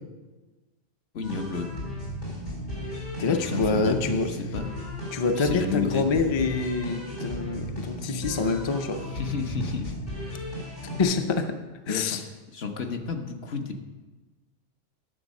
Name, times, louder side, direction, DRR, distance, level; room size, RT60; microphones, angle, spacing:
voice 1, 1.1-1.7 3.3-4.7 5.4-6.1 9.0-10.0 11.9-12.2 12.5-13.8, left 4 dB, 65° left, 5 dB, 1.1 m, -31 dB
sound 1, 1.2-11.0, equal, 80° left, 4.2 m, -35 dB
voice 2, 3.2-4.3 5.1-9.0 11.0-11.5 11.9-12.2, left 4 dB, 35° left, 7 dB, 0.5 m, -26 dB
10.0 x 7.1 x 5.3 m, 1.2 s
omnidirectional pair, 1.2 m